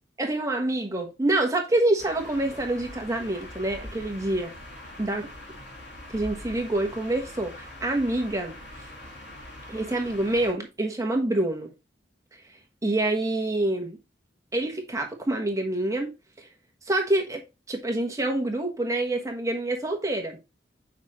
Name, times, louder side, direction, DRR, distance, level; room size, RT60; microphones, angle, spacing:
voice 1, 0.2-4.5 5.0-5.3 6.1-8.6 9.7-11.7 12.3-12.4 12.8-14.0 14.5-16.5 16.9-17.4 17.7-20.4, right 2 dB, 15° right, 1.3 m, -26 dB
sound 1, 2.0-10.5, left 1 dB, 75° left, 3.2 m, -43 dB
6.6 x 5.0 x 3.0 m
head